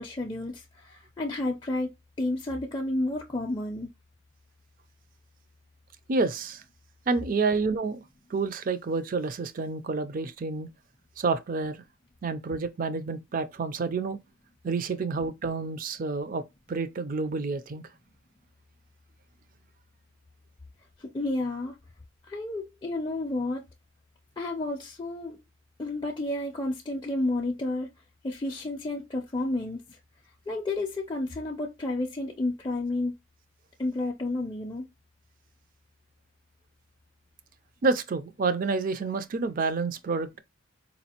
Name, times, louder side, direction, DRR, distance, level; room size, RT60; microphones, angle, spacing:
voice 1, 0.0-1.9 2.2-3.9 21.0-21.8 22.2-23.6 24.4-25.4 25.8-27.9 28.2-30.0 30.5-33.1 33.8-34.8, left 2 dB, 20° left, 0.4 m, -31 dB
voice 2, 6.1-6.6 7.1-8.0 8.3-10.7 11.2-11.8 12.2-14.2 14.6-17.8 37.8-40.4, right 4 dB, 40° right, 0.4 m, -29 dB
4.1 x 2.4 x 2.8 m
head